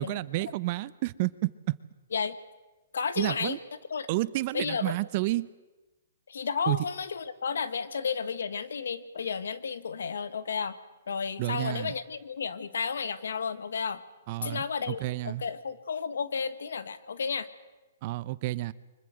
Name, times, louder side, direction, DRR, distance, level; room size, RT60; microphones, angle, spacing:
voice 1, 0.0-1.8 3.2-3.6 4.1-5.5 6.7-6.8 11.4-11.9 14.3-15.4 18.0-18.7, right 18 dB, 40° right, 18 dB, 0.8 m, -30 dB
voice 2, 2.9-3.6 3.9-4.1 4.5-5.0 6.3-10.7 11.1-14.0 14.4-17.5, left 6 dB, 80° left, 13 dB, 1.6 m, -32 dB
24.5 x 21.0 x 7.7 m, 1.1 s
hypercardioid pair, 145°, 0 cm